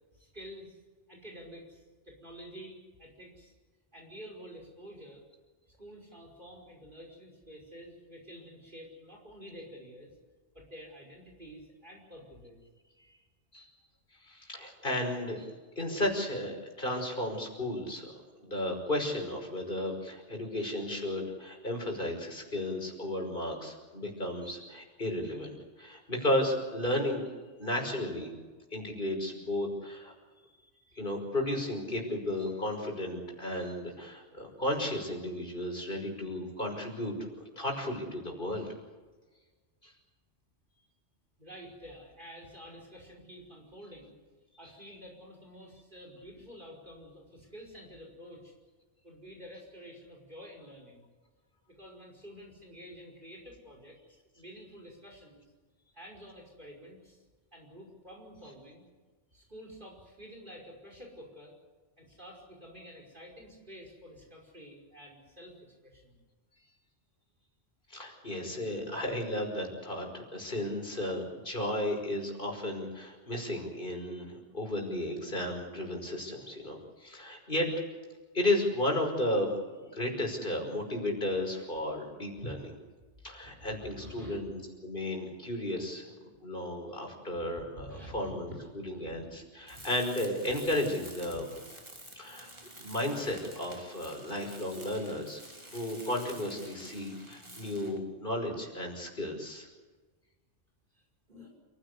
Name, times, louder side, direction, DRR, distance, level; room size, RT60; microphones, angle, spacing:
voice 1, 0.1-0.8 1.1-3.5 3.9-5.3 5.7-10.1 10.5-12.6 41.4-44.1 44.6-48.5 49.0-51.0 51.7-55.4 55.9-57.2 57.5-58.8 59.3-61.5 62.0-65.6 65.8-66.2 83.4-84.4 87.9-89.2 89.7-89.9 91.4-91.6 100.9-101.0 101.3-101.5, equal, 45° right, 0 dB, 5.7 m, -49 dB
voice 2, 14.2-15.5 15.8-27.2 27.6-28.3 28.7-30.1 30.9-38.7 39.8-39.9 67.9-77.7 78.3-79.5 79.8-82.8 83.2-86.0 86.4-91.5 92.2-92.5 92.8-95.4 95.7-99.7, left 1 dB, 45° left, 2 dB, 5.8 m, -34 dB
Tools, 89.7-98.1, right 1 dB, 25° right, 3.2 m, -50 dB
29.0 x 16.5 x 8.2 m, 1.3 s
omnidirectional pair, 1.2 m